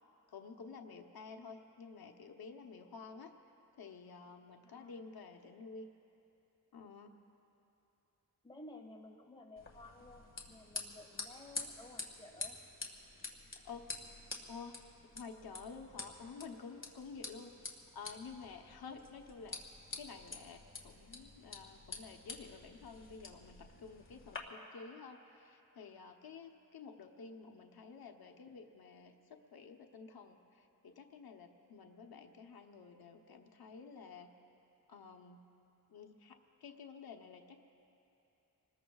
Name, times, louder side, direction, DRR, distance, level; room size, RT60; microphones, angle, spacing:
voice 1, 0.3-3.3 3.8-5.9 6.7-7.1 13.6-13.9 14.5-14.7 15.1-19.6 20.0-29.1 29.5-34.3 34.9-35.4 35.9-37.6, left 5 dB, 85° left, 4 dB, 0.9 m, -51 dB
voice 2, 4.6-5.0 8.4-12.6 13.1-13.3, left 2 dB, 15° left, 0 dB, 1.5 m, -54 dB
sound 1, 9.6-24.4, left 3 dB, 35° left, 1.7 m, -48 dB
27.0 x 20.0 x 2.3 m, 2.8 s
wide cardioid pair, 135°, 36 cm